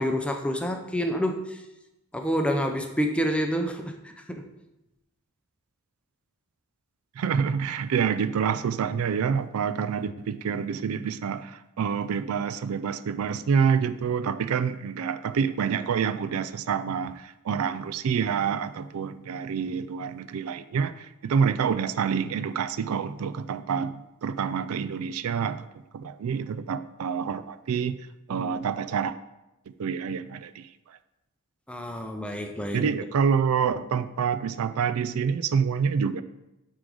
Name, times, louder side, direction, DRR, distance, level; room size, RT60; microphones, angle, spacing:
voice 1, 0.0-1.6 2.1-4.0 4.3-4.5 28.3-28.6 31.7-32.9, equal, 5° left, 5 dB, 0.5 m, -28 dB
voice 2, 7.2-25.7 25.9-28.0 28.3-29.1 29.8-31.0 32.7-36.2, right 6 dB, 70° right, 14 dB, 0.4 m, -27 dB
8.5 x 3.8 x 4.9 m, 0.94 s
head